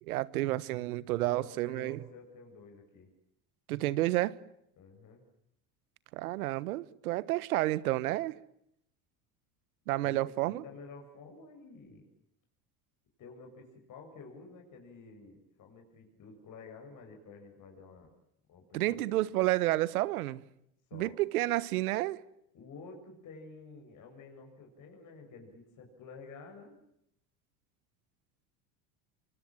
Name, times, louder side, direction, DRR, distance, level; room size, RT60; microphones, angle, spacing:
voice 1, 0.0-2.0 3.7-4.4 6.1-8.4 9.9-10.6 18.7-20.4 20.9-22.2, right 17 dB, 90° right, 1.4 m, -30 dB
voice 2, 1.2-3.1 4.8-5.2 10.0-12.1 13.2-18.1 18.5-19.1 20.9-21.1 22.5-26.7, left 4 dB, 45° left, 7.4 m, -51 dB
26.0 x 24.0 x 8.9 m
supercardioid pair, 110°, 42 cm